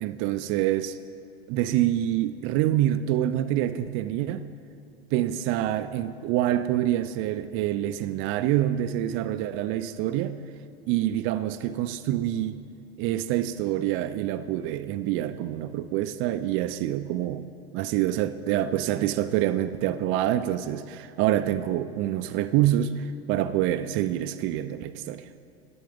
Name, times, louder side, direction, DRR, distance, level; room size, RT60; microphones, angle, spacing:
voice 1, 0.0-1.0 1.5-4.5 5.1-10.4 10.9-12.7 13.0-17.5 17.7-25.3, right 12 dB, 40° right, 11 dB, 0.4 m, -26 dB
12.0 x 10.0 x 3.6 m, 2.5 s
hypercardioid pair, 100°, 31 cm